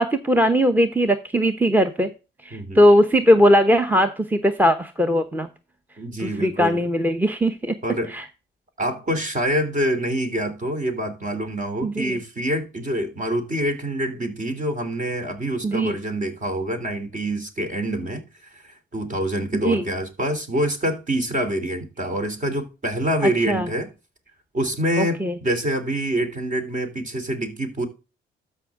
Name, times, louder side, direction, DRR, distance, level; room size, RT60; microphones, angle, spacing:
voice 1, 0.0-2.1 2.4-5.5 6.2-7.8 8.1-8.3 11.8-12.2 15.6-16.0 19.5-19.8 23.2-23.7 25.0-25.4, equal, 10° right, 0.9 m, -19 dB
voice 2, 6.0-6.8 7.8-8.1 8.8-18.2 18.5-23.9 24.5-27.8, right 1 dB, 40° right, 3.1 m, -26 dB
13.0 x 5.5 x 3.6 m
cardioid pair, 90°, 20 cm